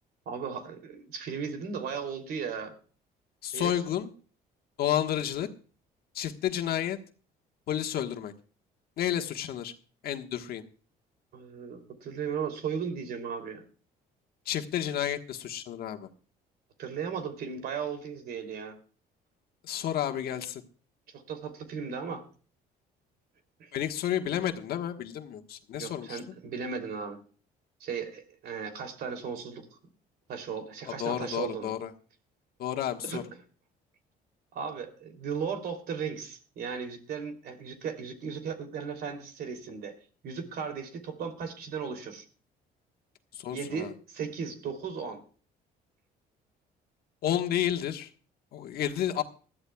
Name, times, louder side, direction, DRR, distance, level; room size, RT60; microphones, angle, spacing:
voice 1, 0.3-2.8 3.5-3.7 11.3-13.6 16.8-18.8 21.1-22.2 23.6-23.7 25.8-27.2 27.8-29.7 30.3-31.7 33.0-33.2 34.5-40.0 40.2-42.2 43.5-45.2, right 6 dB, 65° right, 7 dB, 3.0 m, -36 dB
voice 2, 3.4-4.1 4.8-5.5 6.1-7.0 7.7-8.3 9.0-9.7 10.0-10.6 14.5-16.1 19.6-20.6 23.7-26.2 31.0-31.9 32.6-33.2 43.3-43.9 47.2-48.1 48.5-49.2, left 10 dB, 65° left, 6 dB, 1.4 m, -31 dB
20.0 x 13.5 x 2.3 m, 0.39 s
cardioid pair, 110°, 17 cm